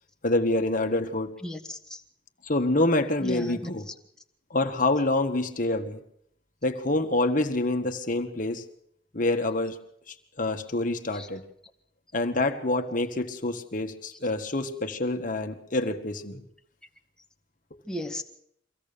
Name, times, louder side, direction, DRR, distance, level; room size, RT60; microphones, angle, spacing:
voice 1, 0.2-1.3 2.4-3.8 4.5-6.0 6.6-8.6 9.1-9.8 10.1-11.4 12.1-16.4 17.7-17.8, left 2 dB, 45° left, 6 dB, 1.7 m, -27 dB
voice 2, 1.4-2.0 3.2-3.9 11.1-11.3 17.8-18.2, left 1 dB, 5° left, 3 dB, 1.6 m, -36 dB
24.5 x 16.5 x 6.9 m, 0.72 s
head